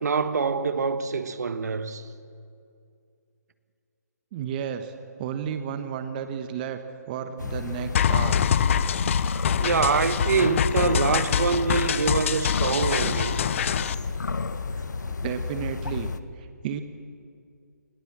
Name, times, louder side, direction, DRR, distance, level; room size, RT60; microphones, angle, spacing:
voice 1, 0.0-2.1 9.6-13.5, right 5 dB, 65° right, 1.4 m, -25 dB
voice 2, 4.3-4.9 5.2-6.8 7.1-8.4 14.7-14.8 15.2-16.1 16.4-16.8, right 8 dB, 30° right, 1.1 m, -32 dB
sound 1, 7.4-16.2, left 4 dB, 80° left, 1.0 m, -31 dB
sound 2, 7.9-13.9, left 8 dB, 45° left, 0.7 m, -25 dB
20.0 x 19.0 x 7.4 m
hypercardioid pair, 150°, 10 cm